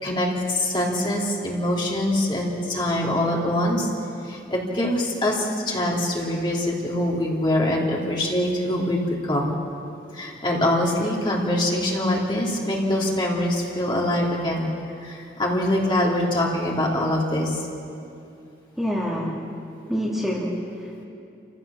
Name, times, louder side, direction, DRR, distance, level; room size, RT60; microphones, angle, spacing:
voice 1, 0.0-3.9 4.2-9.5 10.1-14.7 15.0-17.6, left 1 dB, 25° left, -3 dB, 3.1 m, -24 dB
voice 2, 18.8-19.4 19.9-21.0, equal, ahead, -5 dB, 2.5 m, -27 dB
28.5 x 15.5 x 7.1 m, 2.6 s
head